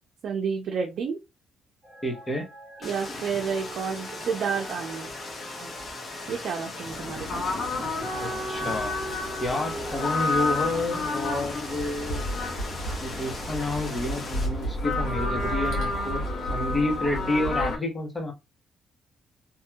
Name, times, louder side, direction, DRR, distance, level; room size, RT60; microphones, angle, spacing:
voice 1, 0.2-1.2 2.8-5.1 5.6-5.7 6.3-7.4, right 6 dB, 65° right, 0.6 m, -30 dB
sound 1, 1.8-13.8 14.4-14.5, right 2 dB, 25° right, 1.3 m, -46 dB
voice 2, 2.0-2.5 3.1-3.2 8.2-8.9 9.4-12.2 13.0-16.2 16.5-18.3, left 2 dB, 25° left, 1.2 m, -29 dB
sound 2, 2.8-14.5, left 2 dB, 45° left, 1.1 m, -39 dB
sound 3, 6.9-17.8, left 2 dB, 75° left, 1.7 m, -30 dB
3.0 x 2.6 x 2.4 m
cardioid pair, 90°, 0 cm